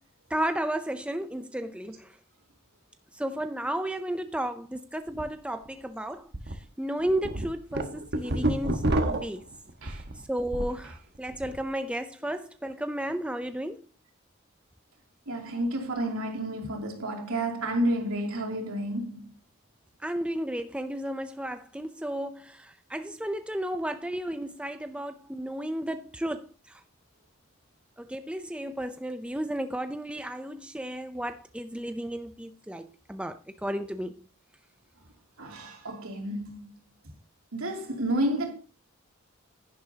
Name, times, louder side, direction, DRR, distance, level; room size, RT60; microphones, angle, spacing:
voice 1, 0.3-2.1 3.1-8.8 9.2-9.5 9.9-10.0 10.3-13.8 20.0-26.8 28.0-34.2, right 1 dB, 5° right, 0.5 m, -33 dB
sound 1, 5.1-5.2 5.7-5.8 6.3-6.5 7.0-10.8 11.2-11.6, right 1 dB, 50° right, 1.2 m, -29 dB
voice 2, 15.3-19.3 35.4-36.7 37.5-38.5, right 1 dB, 80° right, 2.9 m, -30 dB
11.0 x 10.5 x 2.8 m
head